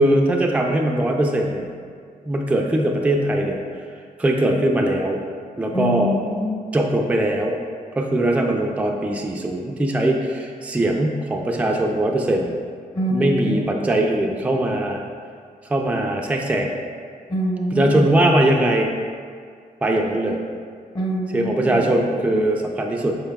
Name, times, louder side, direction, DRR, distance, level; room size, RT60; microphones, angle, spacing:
voice 1, 0.0-1.7 2.3-3.6 4.2-5.2 5.6-6.1 6.7-7.6 7.9-12.5 13.1-15.0 15.7-16.7 17.7-18.9 19.8-20.4 21.3-23.2, right 1 dB, 10° right, 1 dB, 0.4 m, -20 dB
voice 2, 5.7-6.5 12.9-13.7 17.3-18.1 20.9-21.8, equal, 25° left, -2 dB, 0.8 m, -25 dB
5.6 x 3.9 x 2.3 m, 2.1 s
cardioid pair, 85°, 16 cm